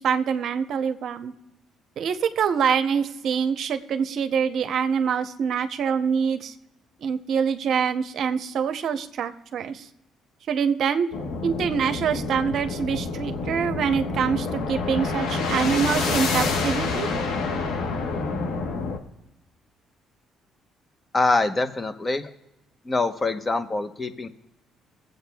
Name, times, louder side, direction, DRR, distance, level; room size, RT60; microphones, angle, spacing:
voice 1, 0.0-1.3 2.0-6.5 7.0-9.9 10.5-11.1 11.4-17.1, right 7 dB, 65° right, 9 dB, 0.7 m, -25 dB
sound 1, 11.1-19.0, left 4 dB, 85° left, 1.1 m, -27 dB
voice 2, 21.1-22.3 22.8-24.3, left 3 dB, 25° left, 9 dB, 0.9 m, -24 dB
22.0 x 8.0 x 2.3 m, 0.93 s
cardioid pair, 85°, 0 cm